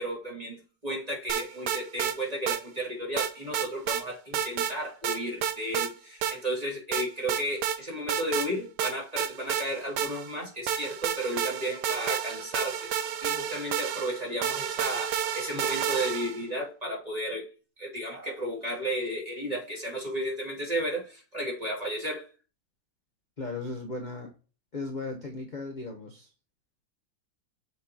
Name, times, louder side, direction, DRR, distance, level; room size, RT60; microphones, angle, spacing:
voice 1, 0.0-12.9 13.2-17.5 17.8-22.2, equal, 20° right, 2.3 m, -33 dB
sound 1, 1.3-2.2 2.5-2.6 3.2-4.0 4.3-4.7 5.0-5.9 6.2-6.4 6.9-7.8 8.1-8.5 8.8-10.3 10.7-16.4, right 9 dB, 70° right, 1.1 m, -30 dB
voice 2, 23.4-24.3 24.7-26.3, left 3 dB, 35° left, 0.8 m, -36 dB
7.8 x 4.6 x 2.8 m
omnidirectional pair, 2.1 m